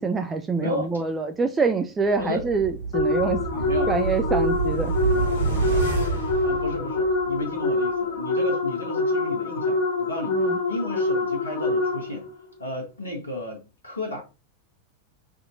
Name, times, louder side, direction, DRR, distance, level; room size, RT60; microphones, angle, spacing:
voice 1, 0.0-3.4 3.9-4.9 10.3-10.6, right 4 dB, 15° right, 0.4 m, -25 dB
voice 2, 0.6-0.9 2.2-2.4 3.5-3.9 6.4-12.3 12.6-14.2, left 1 dB, 75° left, 1.1 m, -33 dB
sound 1, 2.2-7.4 7.7-7.8, right 5 dB, 75° right, 2.0 m, -28 dB
sound 2, 2.9-12.3, left 3 dB, 50° left, 1.5 m, -25 dB
5.7 x 2.7 x 2.5 m
figure-of-eight pair, 90°, 0 cm